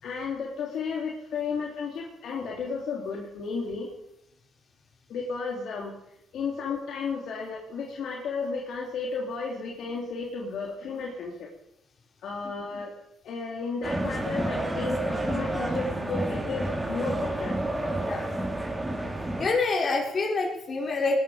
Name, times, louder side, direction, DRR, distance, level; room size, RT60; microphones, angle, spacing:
voice 1, 0.0-3.9 5.1-5.9 6.3-11.5 12.2-12.9 13.2-17.6, left 4 dB, 70° left, -2 dB, 3.4 m, -33 dB
sound 1, 13.8-19.5, right 1 dB, 15° right, 3.8 m, -30 dB
voice 2, 19.4-21.2, left 3 dB, 45° left, -1 dB, 5.5 m, -26 dB
20.0 x 13.0 x 5.2 m, 0.82 s
cardioid pair, 90°, 0 cm